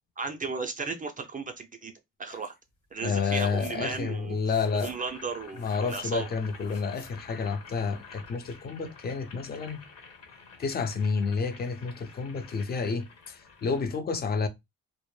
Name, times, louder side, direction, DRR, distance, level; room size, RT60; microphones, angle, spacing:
voice 1, 0.2-1.9 2.2-2.5 2.9-6.3, right 4 dB, 30° right, 0.4 m, -35 dB
voice 2, 3.0-4.9 5.6-9.8 10.6-14.5, left 5 dB, 35° left, 0.4 m, -30 dB
sound 1, 3.2-3.8 4.1-8.1, left 4 dB, 90° left, 0.9 m, -52 dB
Boiling, 4.6-13.9, left 5 dB, 55° left, 1.0 m, -50 dB
2.1 x 2.0 x 3.0 m
cardioid pair, 90°, 30 cm